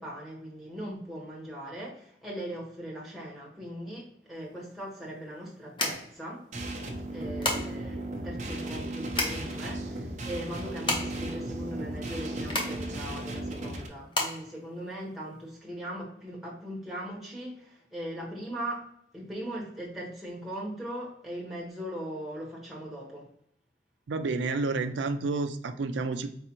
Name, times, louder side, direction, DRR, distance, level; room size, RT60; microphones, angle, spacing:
voice 1, 0.0-6.4 7.1-18.9 19.1-23.3, right 1 dB, ahead, -4 dB, 1.2 m, -39 dB
sound 1, 4.4-15.5, left 2 dB, 25° left, 0.8 m, -35 dB
sound 2, 6.5-13.9, right 1 dB, 40° right, 0.7 m, -36 dB
voice 2, 24.1-26.3, right 3 dB, 85° right, 8 dB, 0.4 m, -30 dB
4.8 x 3.3 x 2.9 m, 0.70 s
head